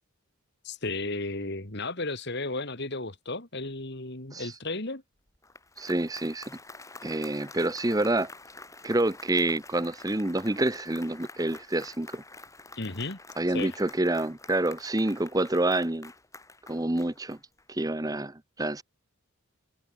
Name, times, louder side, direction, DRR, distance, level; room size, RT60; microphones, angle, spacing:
voice 1, 0.6-5.0 12.8-13.2 13.5-13.8, left 2 dB, 50° left, 2.5 m, -34 dB
Applause, 5.3-17.8, left 3 dB, 15° left, 3.6 m, -48 dB
voice 2, 5.8-6.6 7.0-8.3 8.8-12.2 13.4-16.1 16.7-17.4 17.7-18.8, right 1 dB, 15° right, 0.8 m, -28 dB
head